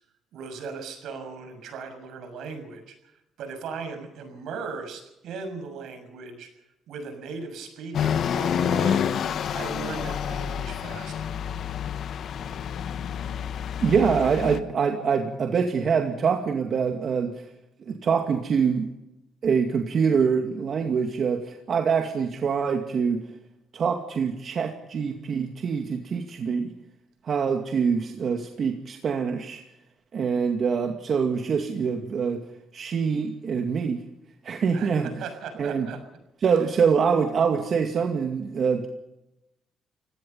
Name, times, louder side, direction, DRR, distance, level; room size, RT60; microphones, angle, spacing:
voice 1, 0.3-2.9 3.4-6.5 6.9-9.1 9.5-11.3 34.7-36.0 36.6-36.7, right 5 dB, 80° right, 7 dB, 6.6 m, -38 dB
sound 1, 7.9-14.6, left 8 dB, 65° left, 1.2 m, -28 dB
voice 2, 13.8-17.4 17.9-18.9 19.4-23.2 23.7-26.7 27.2-29.6 30.1-32.4 32.7-34.0 34.4-35.1 35.6-35.9 36.4-38.9, right 6 dB, 55° right, 4 dB, 2.3 m, -24 dB
29.5 x 17.5 x 5.6 m, 0.89 s
cardioid pair, 90°, 0 cm